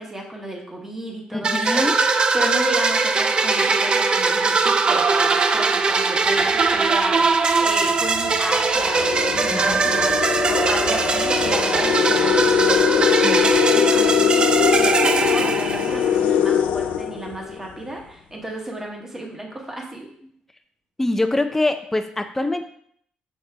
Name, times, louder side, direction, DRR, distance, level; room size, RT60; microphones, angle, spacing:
voice 1, 0.0-1.9 2.3-20.1, right 1 dB, 15° right, 0 dB, 1.3 m, -32 dB
voice 2, 1.3-2.0 9.5-9.8 13.2-13.5 21.0-22.6, left 2 dB, 10° left, 7 dB, 0.6 m, -24 dB
sound 1, 1.4-16.2, right 4 dB, 35° right, 0.4 m, -20 dB
sound 2, 6.4-6.7 7.5-7.6 8.0-17.8, left 8 dB, 85° left, 0.5 m, -22 dB
6.5 x 4.5 x 3.4 m, 0.62 s
cardioid pair, 120°, 3 cm